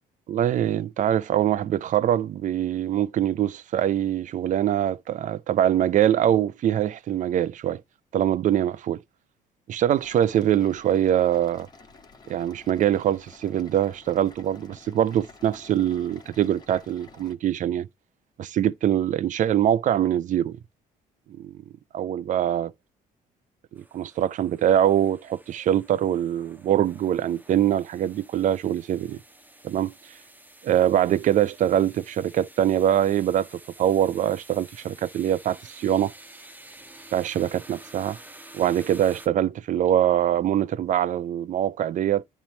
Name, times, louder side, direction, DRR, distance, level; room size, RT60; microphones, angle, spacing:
voice 1, 0.3-7.8 8.1-9.0 9.7-11.7 12.3-17.9 18.4-20.6 21.4-21.6 21.9-22.7 23.7-29.2 29.6-29.9 30.6-36.1 37.1-38.2 38.5-42.2, right 11 dB, 50° right, 0.5 m, -23 dB
sound 1, 9.9-17.3, left 3 dB, 25° left, 1.7 m, -51 dB
sound 2, 23.8-39.3, right 1 dB, 10° right, 1.1 m, -50 dB
10.5 x 3.5 x 4.3 m
cardioid pair, 110°, 17 cm